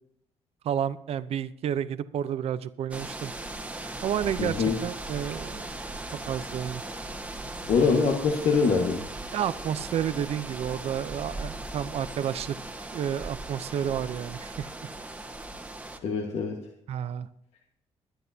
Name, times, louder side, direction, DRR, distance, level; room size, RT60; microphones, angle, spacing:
voice 1, 0.6-3.3 4.0-5.7 6.3-6.8 9.3-14.7 16.9-17.3, right 9 dB, 65° right, 13 dB, 0.7 m, -31 dB
sound 1, 2.9-16.0, right 2 dB, 10° right, 1.4 m, -38 dB
voice 2, 4.4-4.8 7.7-9.0 16.0-16.6, left 5 dB, 70° left, 2 dB, 1.6 m, -24 dB
22.0 x 10.0 x 2.8 m, 0.80 s
cardioid pair, 105°, 11 cm